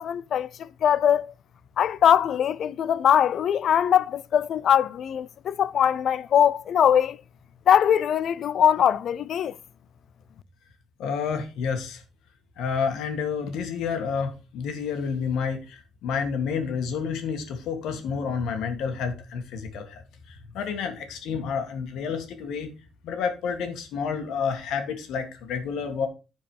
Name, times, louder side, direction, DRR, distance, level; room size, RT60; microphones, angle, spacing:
voice 1, 0.0-1.3 1.8-7.2 7.7-9.5, left 9 dB, 65° left, 0.4 m, -21 dB
voice 2, 11.0-12.0 12.6-20.0 20.3-22.7 23.0-26.1, left 6 dB, 85° left, 1.9 m, -29 dB
11.0 x 4.6 x 4.8 m
cardioid pair, 90°, 0 cm